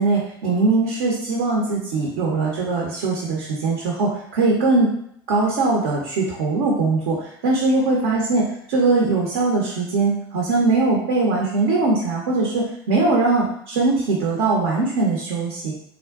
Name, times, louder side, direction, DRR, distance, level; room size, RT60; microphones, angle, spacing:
voice 1, 0.0-4.9 5.3-15.7, right 3 dB, 70° right, -2 dB, 0.7 m, -21 dB
3.5 x 2.2 x 2.3 m, 0.69 s
hypercardioid pair, 80°, 13 cm